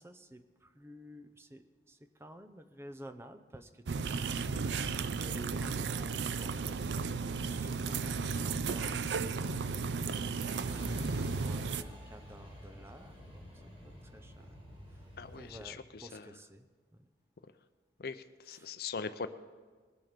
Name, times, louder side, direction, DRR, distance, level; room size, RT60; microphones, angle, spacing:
voice 1, 0.0-4.6 5.2-14.6 14.9-15.1 15.3-17.1 18.5-18.7, right 1 dB, 15° right, 9 dB, 0.6 m, -53 dB
sound 1, 3.9-11.8, right 5 dB, 80° right, 0.5 m, -34 dB
Truck, 10.7-15.7, left 1 dB, 30° right, 3.9 m, -48 dB
voice 2, 15.2-15.8 16.1-16.2 18.0-19.3, left 5 dB, 60° left, 11 dB, 0.5 m, -40 dB
20.5 x 7.5 x 5.1 m, 1.5 s
head